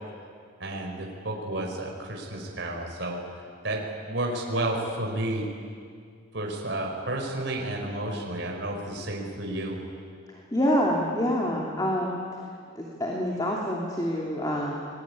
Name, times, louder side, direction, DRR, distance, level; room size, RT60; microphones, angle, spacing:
voice 1, 0.6-3.2 3.6-5.5 6.3-9.8, right 1 dB, 65° right, 0 dB, 4.8 m, -31 dB
voice 2, 10.3-12.2 12.7-14.9, equal, 20° left, -2 dB, 2.9 m, -27 dB
27.5 x 21.5 x 9.6 m, 2.2 s
head